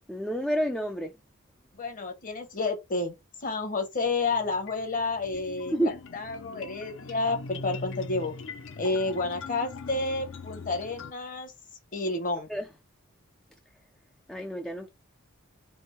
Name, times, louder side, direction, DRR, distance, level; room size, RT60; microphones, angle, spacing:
voice 1, 0.1-1.1 5.7-6.0 12.5-12.7 14.3-14.9, right 1 dB, ahead, 0.3 m, -29 dB
voice 2, 1.7-3.1 3.4-8.3 8.8-11.5 11.9-12.5, left 3 dB, 40° left, 0.9 m, -30 dB
sound 1, 4.0-11.1, left 3 dB, 60° left, 0.5 m, -42 dB
3.4 x 2.5 x 4.2 m
head